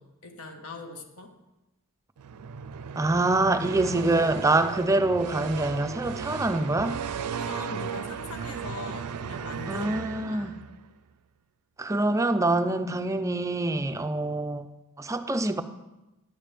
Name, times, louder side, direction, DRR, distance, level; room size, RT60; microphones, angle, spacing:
voice 1, 0.0-1.3 7.3-10.6, left 2 dB, 70° left, 1.3 m, -41 dB
sound 1, 2.2-10.8, right 7 dB, 85° right, 0.4 m, -36 dB
voice 2, 3.0-7.0 9.7-10.5 11.8-14.7 15.0-15.6, right 2 dB, 15° right, 0.4 m, -25 dB
11.0 x 8.9 x 3.4 m
head